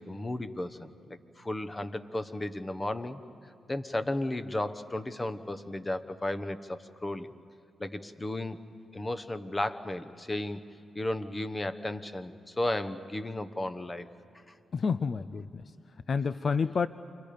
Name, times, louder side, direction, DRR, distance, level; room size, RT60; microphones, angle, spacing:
voice 1, 0.0-3.2 3.7-7.3 7.8-8.6 8.9-10.6 10.9-14.1 14.5-14.6, left 1 dB, 25° left, 10 dB, 1.1 m, -34 dB
voice 2, 14.7-15.6 16.1-16.9, left 5 dB, 55° left, 14 dB, 0.5 m, -29 dB
29.5 x 23.0 x 5.2 m, 2.6 s
supercardioid pair, 50°, 0 cm